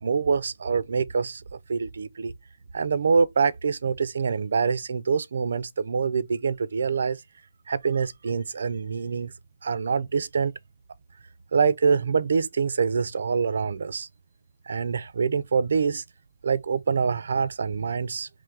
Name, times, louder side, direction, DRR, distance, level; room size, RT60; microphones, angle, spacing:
voice 1, 0.0-2.3 2.7-7.2 7.7-9.3 9.6-10.6 11.5-14.1 14.7-16.0 16.4-18.3, right 5 dB, 70° right, 0.3 m, -25 dB
3.7 x 3.0 x 3.2 m
hypercardioid pair, 175°, 0 cm